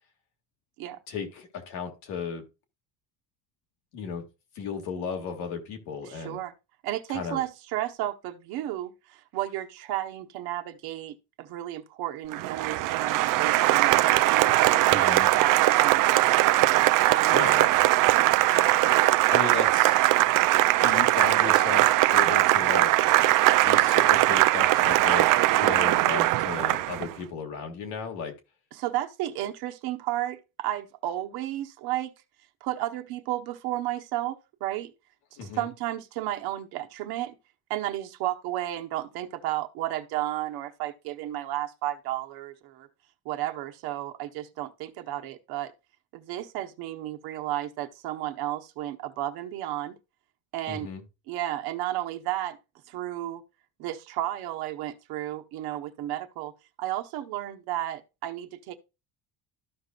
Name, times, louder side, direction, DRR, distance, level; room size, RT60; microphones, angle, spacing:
voice 1, 1.1-2.4 3.9-4.2 4.6-6.4 7.1-7.4 14.9-15.3 17.3-17.7 19.3-19.9 20.8-22.9 23.6-28.3 35.4-35.7 50.7-51.0, left 6 dB, 80° left, 2.1 m, -35 dB
voice 2, 6.0-6.5 6.8-14.3 14.7-16.4 17.0-17.4 18.1-18.3 28.7-32.1 32.6-34.9 35.4-37.4 37.7-42.9 43.2-45.7 46.1-50.0 50.5-50.9 51.3-52.6 52.9-53.4 53.8-56.5 56.8-58.7, right 14 dB, 75° right, 1.1 m, -33 dB
Applause, 12.3-27.1, right 16 dB, 55° right, 0.5 m, -21 dB
13.5 x 5.2 x 2.4 m
supercardioid pair, 100°, 38 cm